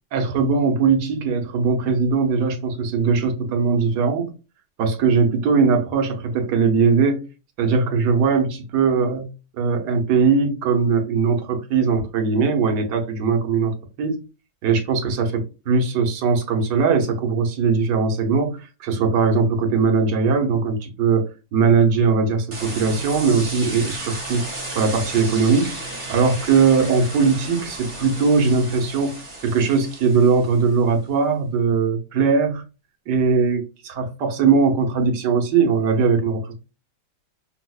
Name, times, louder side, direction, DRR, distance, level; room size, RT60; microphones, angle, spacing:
voice 1, 0.1-4.3 4.8-7.2 7.6-9.3 9.6-14.2 14.6-21.3 21.5-24.4 24.7-29.1 29.4-32.6 33.1-36.5, right 5 dB, 85° right, 1.4 m, -20 dB
sound 1, 22.5-30.7, right 2 dB, 30° right, 1.2 m, -34 dB
5.0 x 2.1 x 2.3 m
omnidirectional pair, 1.8 m